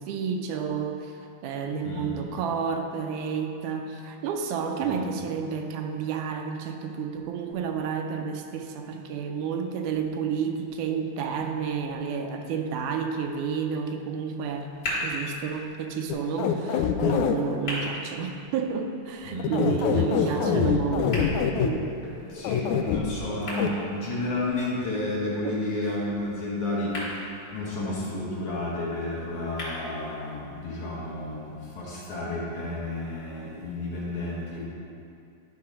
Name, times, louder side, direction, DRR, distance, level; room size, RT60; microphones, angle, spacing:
voice 1, 0.0-14.7 15.0-21.9, right 6 dB, 85° right, 4 dB, 2.1 m, -31 dB
voice 2, 1.8-2.2 4.8-5.1 19.2-19.6 19.9-20.7 22.3-34.7, left 2 dB, 60° left, -6 dB, 2.1 m, -32 dB
sound 1, 14.4-30.4, left 1 dB, 35° left, 2.3 m, -40 dB
sound 2, 16.1-17.4 19.4-21.7 22.4-23.0 23.6-23.7, left 8 dB, 80° left, 1.8 m, -24 dB
10.5 x 4.0 x 5.1 m, 2.6 s
omnidirectional pair, 3.5 m